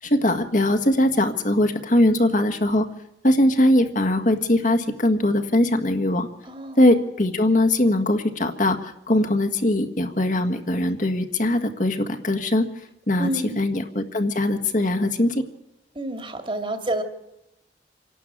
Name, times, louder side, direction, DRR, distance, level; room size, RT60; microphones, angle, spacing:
voice 1, 0.0-2.9 3.2-6.3 6.8-12.6 13.1-15.4, left 1 dB, 45° left, 6 dB, 1.7 m, -21 dB
voice 2, 6.5-6.8 13.2-13.6 15.9-17.0, right 1 dB, 30° right, 8 dB, 2.2 m, -28 dB
27.0 x 12.0 x 8.7 m, 0.87 s
head